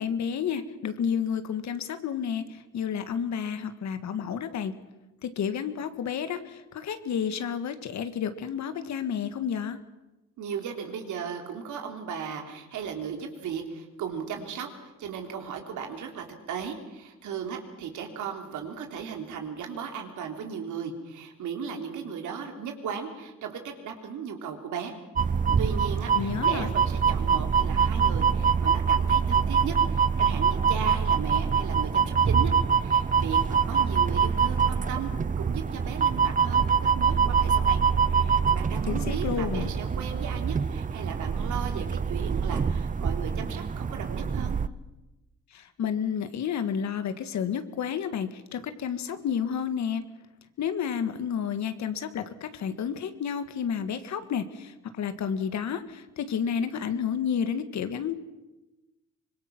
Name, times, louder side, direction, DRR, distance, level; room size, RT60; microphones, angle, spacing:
voice 1, 0.0-4.7 5.2-9.8 26.2-26.7 38.9-39.7 45.5-50.0 50.6-58.2, left 7 dB, 65° left, 10 dB, 1.7 m, -31 dB
voice 2, 10.4-24.9 25.6-32.5 32.8-35.1 35.4-37.8 38.1-44.6, right 6 dB, 80° right, 4 dB, 3.3 m, -36 dB
sound 1, 25.2-44.7, right 6 dB, 25° right, 0.7 m, -25 dB
24.5 x 21.5 x 6.0 m, 1.0 s
cardioid pair, 90°, 30 cm